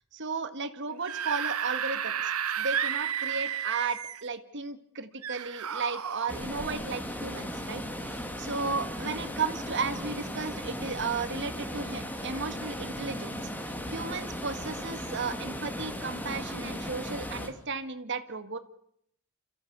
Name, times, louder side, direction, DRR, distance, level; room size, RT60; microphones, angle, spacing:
voice 1, 0.1-18.6, right 4 dB, 55° right, 10 dB, 1.9 m, -35 dB
Screaming / Screech, 0.9-4.3 5.2-6.3, right 8 dB, 80° right, 1.0 m, -32 dB
sound 1, 6.3-17.5, equal, 10° left, 2.5 m, -37 dB
29.0 x 15.0 x 8.2 m, 0.73 s
head